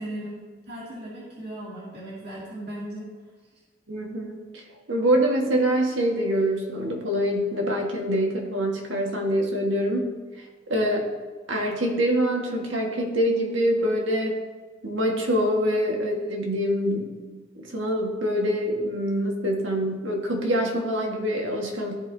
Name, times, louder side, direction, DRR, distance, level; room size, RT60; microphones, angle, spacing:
voice 1, 0.0-3.1, right 1 dB, 60° right, -8 dB, 2.2 m, -37 dB
voice 2, 3.9-4.6 4.9-10.0 10.7-11.1 11.5-14.4 14.8-17.1 17.5-21.9, equal, 85° right, 1 dB, 1.4 m, -25 dB
14.0 x 4.9 x 2.7 m, 1.4 s
head